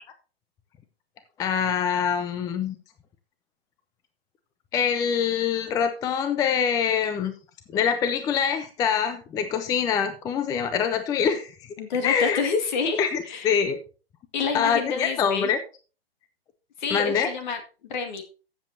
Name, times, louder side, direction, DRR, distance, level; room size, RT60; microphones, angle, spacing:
voice 1, 1.4-2.8 4.7-7.3 7.7-11.7 12.0-12.4 13.0-13.8 14.5-15.6 16.9-17.3, left 7 dB, 10° left, 10 dB, 0.5 m, -24 dB
voice 2, 11.8-13.5 14.3-15.5 16.8-17.6 17.9-18.2, left 5 dB, 50° left, 7 dB, 2.0 m, -28 dB
14.0 x 7.6 x 2.7 m, 0.34 s
figure-of-eight pair, 120°, 30 cm